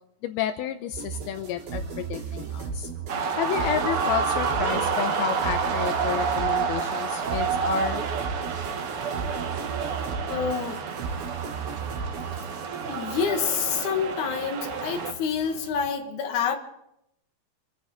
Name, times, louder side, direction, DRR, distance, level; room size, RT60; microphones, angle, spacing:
voice 1, 0.2-2.9 3.4-8.0, left 11 dB, 80° left, 2.6 m, -31 dB
sound 1, 0.9-15.9, right 6 dB, 65° right, 4.4 m, -36 dB
sound 2, 3.1-15.1, right 5 dB, 90° right, 1.2 m, -29 dB
voice 2, 10.3-10.8 12.9-16.6, left 7 dB, 60° left, 2.7 m, -27 dB
26.5 x 9.4 x 5.6 m
omnidirectional pair, 4.6 m